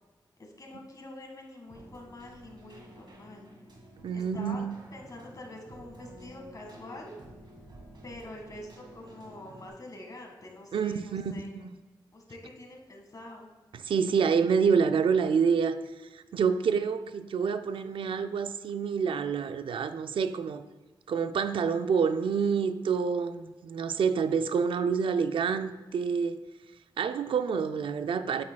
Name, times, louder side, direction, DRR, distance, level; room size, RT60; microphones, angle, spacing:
voice 1, 0.4-3.5 4.1-4.6 4.9-7.2 8.0-11.6 12.1-13.5, left 1 dB, 45° left, 1 dB, 1.8 m, -46 dB
Keyboard (musical), 1.7-9.7, right 1 dB, 60° right, 1.9 m, -51 dB
voice 2, 4.0-4.7 10.7-11.3 13.7-15.8 16.1-20.6 21.1-26.4 27.0-28.4, right 6 dB, 85° right, 10 dB, 0.4 m, -27 dB
8.5 x 8.4 x 2.3 m, 1.2 s
cardioid pair, 70°, 9 cm